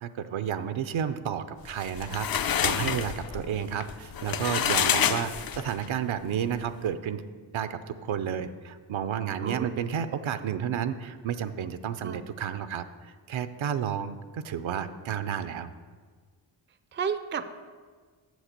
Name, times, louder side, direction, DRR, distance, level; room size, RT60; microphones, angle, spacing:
voice 1, 0.0-7.2 7.5-15.7, right 8 dB, 70° right, 11 dB, 0.7 m, -31 dB
sound 1, 1.7-5.9, left 8 dB, 45° left, 0.5 m, -28 dB
voice 2, 9.4-9.8 12.0-12.2 16.9-17.4, right 6 dB, 25° right, 12 dB, 0.4 m, -32 dB
7.4 x 6.4 x 6.5 m, 1.5 s
cardioid pair, 65°, 49 cm